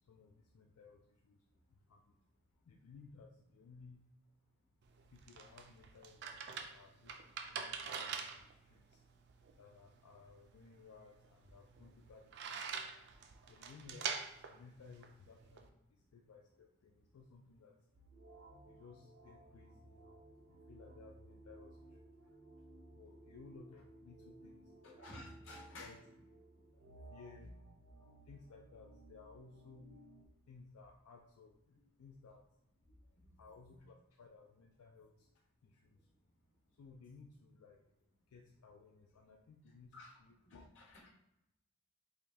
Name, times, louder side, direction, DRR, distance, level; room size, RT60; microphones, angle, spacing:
voice 1, 0.0-1.4 1.7-2.2 2.6-4.0 5.1-9.0 9.6-12.8 13.5-17.8 18.6-22.3 22.9-25.0 25.8-26.0 27.0-27.5 28.3-29.9 30.5-32.4 33.4-35.3 35.6-36.1 36.7-37.8 38.3-40.7, left 4 dB, 85° left, 1 dB, 0.4 m, -59 dB
sound 1, 4.8-15.7, right 6 dB, 50° right, 0.3 m, -46 dB
sound 2, 17.9-30.3, right 1 dB, 80° right, 0.7 m, -58 dB
voice 2, 24.8-25.9 27.4-27.5 33.2-33.3 39.9-40.1 40.4-41.1, left 2 dB, 55° left, -4 dB, 1.3 m, -53 dB
4.8 x 2.2 x 2.7 m, 0.86 s
head